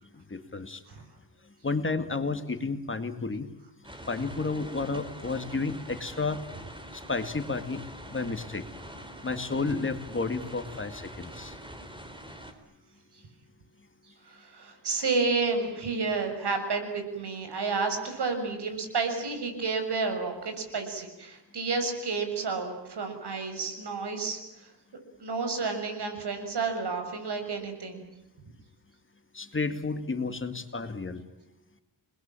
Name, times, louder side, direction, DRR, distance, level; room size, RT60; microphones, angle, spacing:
voice 1, 0.1-0.8 1.6-3.5 4.1-6.4 6.9-7.8 8.1-8.7 9.2-11.6 29.3-31.2, left 3 dB, 30° left, 9 dB, 2.2 m, -31 dB
sound 1, 3.8-12.5, equal, 10° right, 3.9 m, -44 dB
voice 2, 14.3-24.7 25.2-28.1, right 4 dB, 75° right, 6 dB, 7.0 m, -31 dB
29.5 x 21.0 x 9.0 m, 0.92 s
wide cardioid pair, 130°, 40 cm